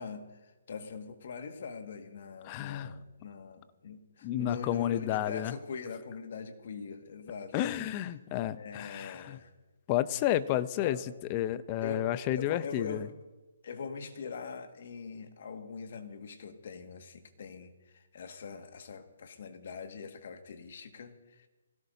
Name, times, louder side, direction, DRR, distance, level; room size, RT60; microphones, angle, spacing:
voice 1, 0.0-7.6 8.5-9.5 10.8-11.1 11.8-13.1 13.6-21.5, left 5 dB, 50° left, 5 dB, 1.9 m, -42 dB
voice 2, 2.4-2.9 4.2-5.5 7.5-9.4 9.9-11.0 11.3-13.1, left 12 dB, 25° left, 15 dB, 0.6 m, -31 dB
24.5 x 17.0 x 2.8 m, 1.1 s
hypercardioid pair, 160°, 0 cm